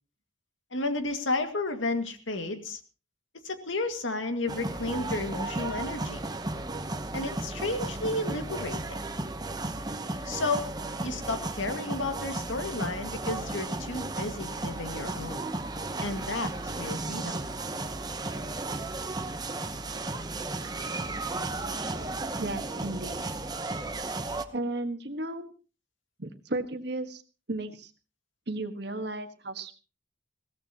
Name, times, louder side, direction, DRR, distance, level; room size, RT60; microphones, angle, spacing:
voice 1, 0.7-2.8 3.4-6.2 7.1-9.0 10.2-10.7 11.0-15.5 16.0-17.4, left 2 dB, 80° left, 7 dB, 2.1 m, -32 dB
sound 1, 4.5-24.5, right 2 dB, 20° right, 1.0 m, -34 dB
voice 2, 22.4-23.2 24.5-25.5 26.2-27.2 27.5-27.9 28.5-29.7, right 2 dB, 55° right, 8 dB, 1.6 m, -34 dB
21.5 x 16.5 x 3.0 m, 0.34 s
head